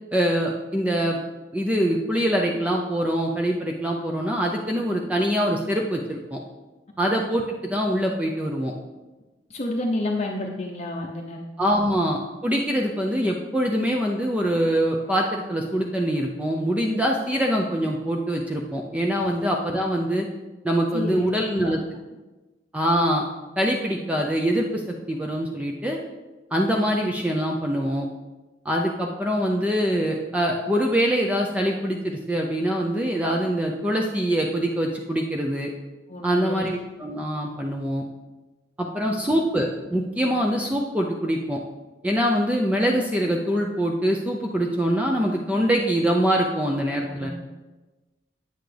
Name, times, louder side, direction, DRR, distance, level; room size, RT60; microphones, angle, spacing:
voice 1, 0.1-1.2 1.5-6.4 7.0-8.7 11.6-20.3 20.6-21.8 22.7-23.2 23.6-24.8 25.1-26.0 26.5-28.1 28.6-35.7 36.2-38.0 38.8-41.6 42.0-47.3, equal, 10° right, 0 dB, 0.5 m, -24 dB
voice 2, 9.5-11.8 19.2-19.3 20.9-21.8 36.1-36.7 39.0-39.1 47.1-47.3, left 1 dB, 35° left, 0 dB, 0.7 m, -30 dB
9.1 x 8.3 x 3.3 m, 1.2 s
head